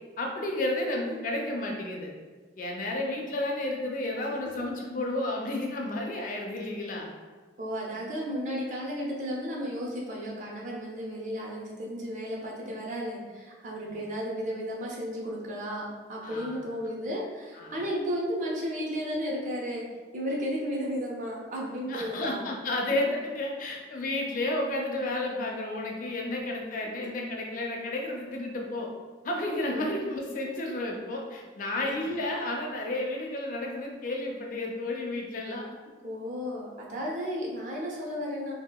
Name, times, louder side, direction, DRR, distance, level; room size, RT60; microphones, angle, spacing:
voice 1, 0.2-2.1 2.6-7.1 16.2-16.6 17.5-17.8 21.9-28.9 29.2-35.7, left 2 dB, 50° left, 0 dB, 0.4 m, -32 dB
voice 2, 7.6-19.8 20.1-22.4 36.0-38.5, equal, 45° right, -3 dB, 0.5 m, -33 dB
2.7 x 2.4 x 2.2 m, 1.4 s
head